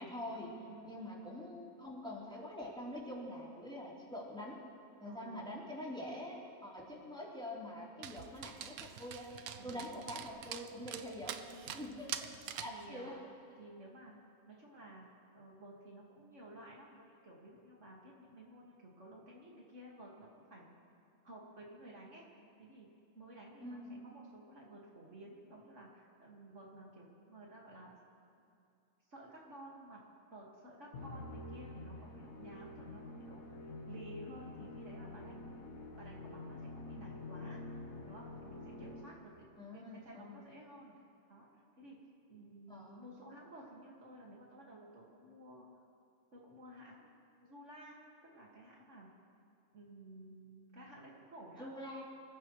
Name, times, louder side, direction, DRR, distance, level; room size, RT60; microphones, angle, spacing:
voice 1, 0.0-0.5 0.8-4.6 5.0-12.1 12.5-13.2 23.6-23.9 39.6-40.4 42.7-43.1 51.6-52.0, left 1 dB, 5° left, -6 dB, 3.3 m, -45 dB
voice 2, 5.0-5.5 9.6-10.0 11.8-12.1 12.6-13.1 13.6-14.1 14.5-15.1 15.3-20.6 21.2-22.9 23.1-28.0 29.1-30.0 30.3-35.5 36.0-37.6 38.1-41.0 41.3-42.0 42.3-45.7 46.3-48.0 48.2-49.1 49.7-51.7, right 1 dB, 55° right, -3 dB, 2.3 m, -54 dB
Dog, 8.0-12.8, right 9 dB, 85° right, 1.2 m, -45 dB
Musical instrument, 30.9-39.4, left 2 dB, 75° left, 1.6 m, -48 dB
26.5 x 14.5 x 3.1 m, 2.5 s
omnidirectional pair, 1.5 m